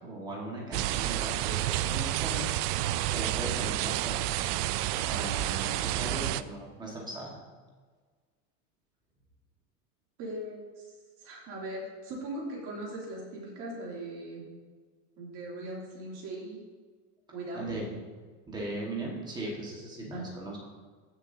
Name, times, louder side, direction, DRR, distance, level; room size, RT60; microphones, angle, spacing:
voice 1, 0.0-2.5 3.1-4.3 5.0-7.4 17.5-17.9 18.5-20.6, right 1 dB, 10° right, -3 dB, 1.5 m, -38 dB
sound 1, 0.7-6.4, right 14 dB, 85° right, 0.5 m, -30 dB
voice 2, 10.2-14.5 15.2-16.6 17.3-18.0 20.1-20.2, right 1 dB, 45° right, -3 dB, 2.8 m, -40 dB
15.0 x 6.8 x 2.7 m, 1.5 s
cardioid pair, 180°, 44 cm